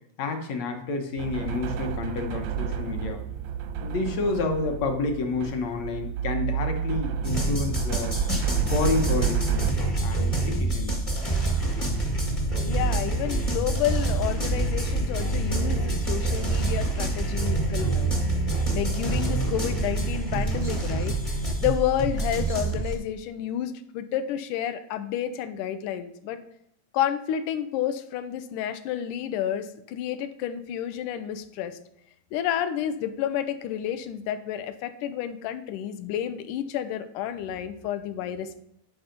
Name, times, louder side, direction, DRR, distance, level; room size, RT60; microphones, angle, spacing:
voice 1, 0.2-3.2 3.8-8.2 8.7-10.9, left 3 dB, 65° left, 4 dB, 1.9 m, -29 dB
sound 1, 1.2-9.7, right 9 dB, 80° right, 1.6 m, -30 dB
sound 2, 7.2-22.9, right 2 dB, 30° left, 0.6 m, -26 dB
voice 2, 12.7-18.2 18.7-21.2 21.6-26.4 26.9-31.8 32.3-38.6, left 10 dB, 80° left, 11 dB, 2.1 m, -30 dB
10.5 x 5.6 x 5.1 m, 0.76 s
omnidirectional pair, 3.8 m